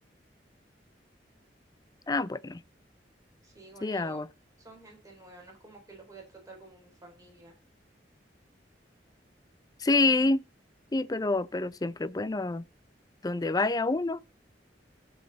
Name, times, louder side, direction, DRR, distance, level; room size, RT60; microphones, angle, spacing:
voice 1, 2.1-2.6 3.8-4.3 9.8-10.4 10.9-12.6 13.2-14.2, left 3 dB, 20° left, 0.4 m, -27 dB
voice 2, 3.4-4.2 4.6-7.5, right 2 dB, 20° right, 3.6 m, -50 dB
15.0 x 5.6 x 3.9 m
head